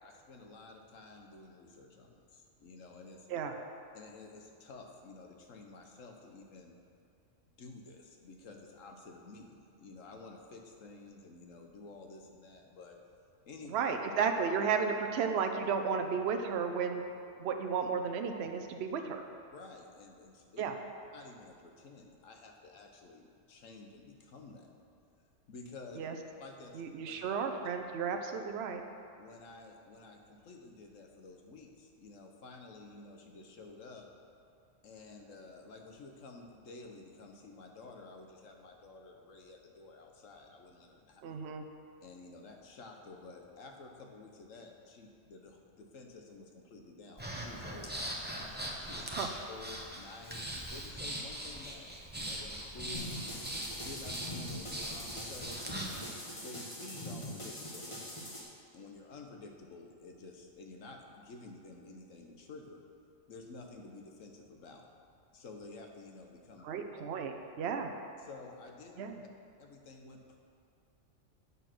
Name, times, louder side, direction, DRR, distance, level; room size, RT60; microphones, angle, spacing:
voice 1, 0.0-3.3 3.9-6.7 7.5-13.0 13.4-13.7 17.4-17.5 19.5-20.6 21.1-24.7 25.5-26.0 26.4-27.2 29.2-34.1 34.8-41.2 42.0-48.1 48.5-49.1 49.5-53.2 53.8-55.6 56.4-58.1 58.7-62.8 63.3-64.8 65.3-66.7 68.2-69.0 69.6-70.4, left 3 dB, 75° left, 2 dB, 1.4 m, -51 dB
voice 2, 13.7-17.0 17.4-19.2 20.6-20.7 26.0-26.1 26.7-28.8 41.2-41.6 49.1-49.3 66.6-67.9 69.0-69.2, right 6 dB, 60° right, 5 dB, 0.9 m, -33 dB
Breathing, 47.2-56.0, right 1 dB, 10° right, 0.9 m, -41 dB
sound 1, 52.9-58.4, equal, 25° left, 1.4 m, -43 dB
9.1 x 6.8 x 6.1 m, 2.4 s
omnidirectional pair, 1.4 m